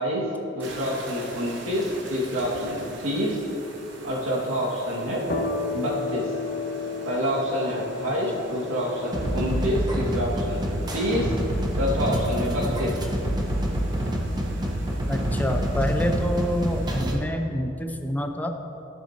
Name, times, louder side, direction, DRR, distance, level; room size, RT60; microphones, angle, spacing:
voice 1, 0.0-3.4 4.0-5.2 5.7-6.3 7.0-11.3 11.8-13.0, equal, 85° right, -5 dB, 2.1 m, -27 dB
sound 1, 0.6-17.2, right 2 dB, 60° right, 1.2 m, -43 dB
sound 2, 5.3-12.8, left 3 dB, 55° left, 1.4 m, -35 dB
sound 3, 9.1-17.1, equal, 20° right, 1.0 m, -27 dB
voice 2, 15.1-18.6, equal, 10° left, 5 dB, 0.5 m, -27 dB
14.5 x 7.0 x 2.9 m, 2.9 s
head